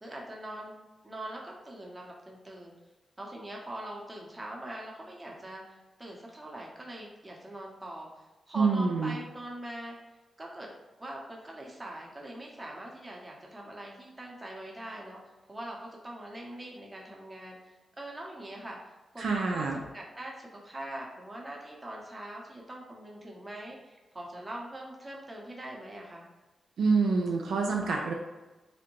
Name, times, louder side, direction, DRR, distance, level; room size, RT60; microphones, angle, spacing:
voice 1, 0.0-2.7 3.2-10.0 10.4-10.7 11.0-15.2 15.5-18.8 19.1-26.3, right 1 dB, 25° right, -2 dB, 0.8 m, -42 dB
voice 2, 8.6-9.1 19.2-19.7 26.8-28.1, right 4 dB, 80° right, 0 dB, 0.3 m, -26 dB
2.5 x 2.1 x 3.0 m, 1.1 s
supercardioid pair, 45°, 0 cm